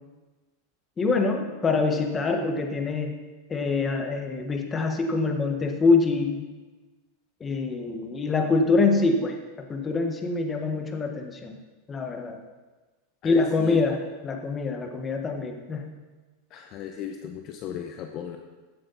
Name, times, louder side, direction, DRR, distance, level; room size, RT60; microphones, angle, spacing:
voice 1, 1.0-3.2 3.5-6.5 7.4-11.5 11.9-12.4 13.2-14.0 14.2-15.9, left 3 dB, 20° left, 4 dB, 1.4 m, -25 dB
voice 2, 13.2-13.8 16.5-18.4, left 8 dB, 40° left, 4 dB, 0.9 m, -35 dB
15.0 x 7.7 x 4.2 m, 1.3 s
supercardioid pair, 140°, 0 cm